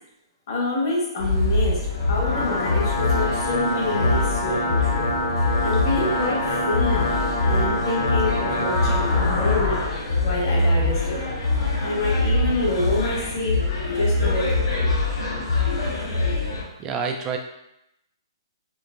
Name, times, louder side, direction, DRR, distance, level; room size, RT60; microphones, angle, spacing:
voice 1, 0.5-5.0 5.6-7.2 7.4-9.8 10.2-11.2 11.8-13.6 13.9-14.6, left 2 dB, 55° left, -4 dB, 1.3 m, -27 dB
sound 1, 1.2-16.6, left 2 dB, 70° left, 1.0 m, -24 dB
sound 2, 1.9-9.9, left 1 dB, 30° left, 0.8 m, -26 dB
voice 2, 16.8-17.4, right 5 dB, 20° right, 3 dB, 0.4 m, -27 dB
4.4 x 2.0 x 2.6 m, 0.83 s
hypercardioid pair, 145°, 3 cm